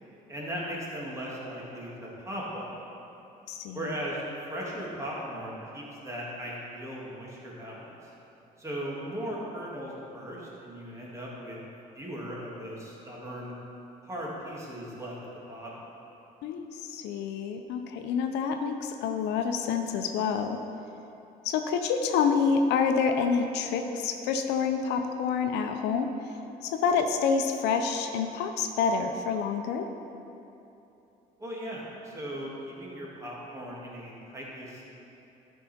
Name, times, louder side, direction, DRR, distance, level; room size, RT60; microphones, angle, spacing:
voice 1, 0.3-2.8 3.7-4.2 4.5-7.9 8.6-11.6 11.9-13.5 14.0-15.1 15.5-15.9 31.4-34.8, equal, 15° right, -5 dB, 2.1 m, -38 dB
voice 2, 3.5-3.8 16.4-20.6 21.4-26.1 26.6-29.9, left 6 dB, 85° left, 6 dB, 0.7 m, -27 dB
12.5 x 5.6 x 4.3 m, 2.9 s
cardioid pair, 110°, 17 cm